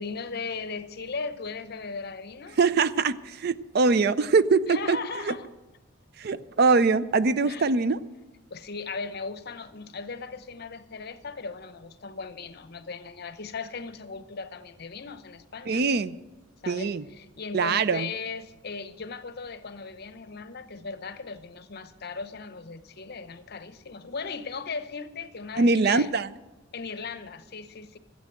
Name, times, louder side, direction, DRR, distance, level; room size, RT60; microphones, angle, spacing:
voice 1, 0.0-2.6 4.7-5.5 7.5-7.7 8.5-15.8 16.6-26.1 26.7-28.0, left 4 dB, 55° left, 0.8 m, -37 dB
voice 2, 2.6-5.0 5.2-5.3 6.2-8.0 15.7-16.1 16.7-17.0 17.5-18.1 25.6-26.3, right 4 dB, 55° right, 0.5 m, -23 dB
13.5 x 8.4 x 7.7 m
head